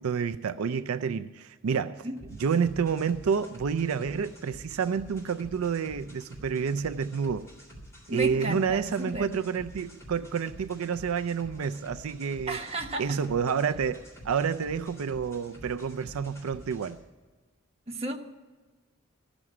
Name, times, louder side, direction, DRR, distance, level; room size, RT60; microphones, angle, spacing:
voice 1, 0.0-2.1 2.4-7.5 8.1-12.6 13.0-17.0, right 6 dB, 80° right, 11 dB, 0.4 m, -29 dB
sound 1, 2.2-16.9, equal, 15° left, 3.3 m, -48 dB
voice 2, 8.1-9.3 12.5-13.2 17.9-18.2, right 1 dB, 30° right, 3 dB, 1.1 m, -33 dB
14.5 x 6.1 x 9.6 m, 1.3 s
head